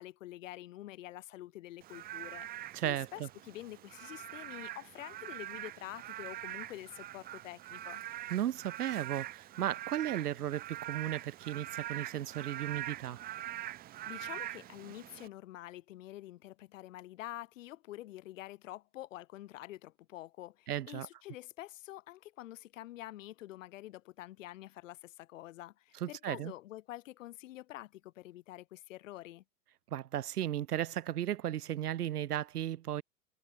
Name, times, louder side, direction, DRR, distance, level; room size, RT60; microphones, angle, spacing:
voice 1, 0.0-8.0 14.1-29.4, left 15 dB, 55° left, 3.2 m, -47 dB
Frog / Rain, 1.8-15.3, right 13 dB, 20° right, 0.9 m, -44 dB
voice 2, 2.7-3.3 8.3-13.2 20.7-21.1 26.0-26.5 29.9-33.0, right 11 dB, 80° right, 0.6 m, -35 dB
figure-of-eight pair, 110°, 46 cm